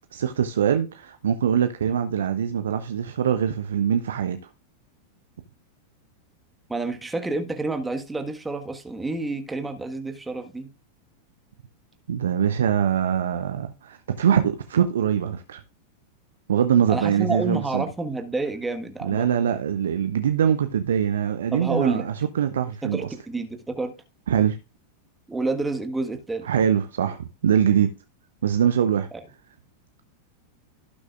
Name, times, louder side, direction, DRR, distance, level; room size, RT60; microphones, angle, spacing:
voice 1, 0.1-4.4 12.1-15.6 16.5-17.9 19.0-23.1 24.3-24.6 26.4-27.9 28.4-29.1, right 8 dB, 65° right, 0.8 m, -23 dB
voice 2, 6.7-10.7 16.9-19.3 21.5-22.1 22.8-24.0 25.3-26.5, right 3 dB, 10° right, 1.5 m, -29 dB
17.0 x 6.3 x 2.5 m
figure-of-eight pair, 90°, 0 cm